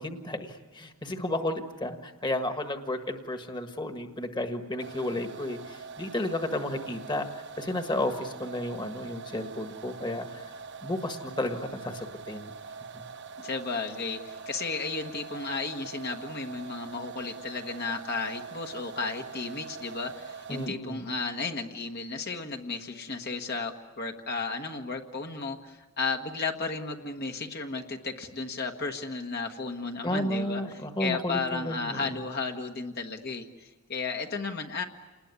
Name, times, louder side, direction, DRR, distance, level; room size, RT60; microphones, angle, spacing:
voice 1, 0.0-7.3 7.6-10.3 10.8-12.5 12.9-13.0 20.5-21.1 30.0-32.1, left 1 dB, 20° left, 6 dB, 1.6 m, -32 dB
sound 1, 4.8-20.7, right 5 dB, 55° right, 0.8 m, -43 dB
voice 2, 13.4-30.6 31.0-34.8, left 4 dB, 45° left, 3 dB, 1.4 m, -34 dB
28.5 x 20.0 x 9.7 m, 1.3 s
head